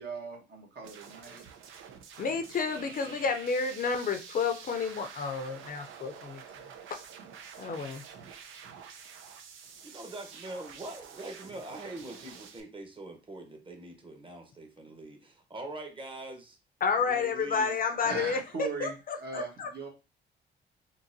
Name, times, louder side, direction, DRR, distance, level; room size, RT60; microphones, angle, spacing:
voice 1, 0.0-1.4 2.7-3.3 18.0-19.9, right 4 dB, 55° right, 1 dB, 1.3 m, -40 dB
sound 1, 0.8-12.6, right 7 dB, 85° right, 0.6 m, -48 dB
voice 2, 2.2-6.4 7.6-8.0 16.8-19.9, left 5 dB, 45° left, 7 dB, 0.5 m, -31 dB
voice 3, 9.8-16.6 17.0-17.8 19.3-19.4, right 2 dB, 25° right, 4 dB, 1.0 m, -43 dB
3.8 x 2.8 x 2.6 m, 0.29 s
cardioid pair, 90°, 20 cm